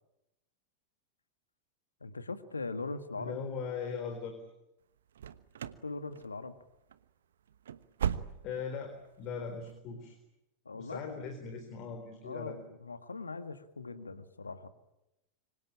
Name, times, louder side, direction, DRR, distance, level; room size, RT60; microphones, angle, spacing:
voice 1, 2.0-3.4 5.8-6.6 10.7-11.2 12.2-14.7, left 3 dB, 75° left, 12 dB, 1.8 m, -40 dB
voice 2, 3.2-4.4 8.4-8.9 9.2-10.2 10.8-12.6, left 5 dB, 40° left, 4 dB, 4.2 m, -39 dB
sound 1, 5.1-5.9 6.1-6.6 6.9-7.0 7.5-8.7 9.0-9.1 9.7-9.8, right 8 dB, 65° right, 1.1 m, -37 dB
26.0 x 25.0 x 8.8 m, 0.90 s
figure-of-eight pair, 90°, 0 cm